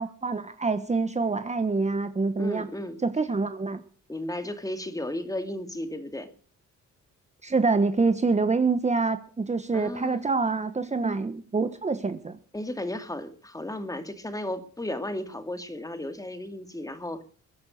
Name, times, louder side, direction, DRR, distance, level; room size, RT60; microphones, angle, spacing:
voice 1, 0.0-2.7 3.0-3.8 7.4-12.4, right 4 dB, 25° right, 10 dB, 1.3 m, -26 dB
voice 2, 2.4-3.0 4.1-6.3 9.7-10.3 12.5-17.2, left 1 dB, 10° left, 8 dB, 2.5 m, -34 dB
22.0 x 9.6 x 6.6 m, 0.43 s
cardioid pair, 90°, 30 cm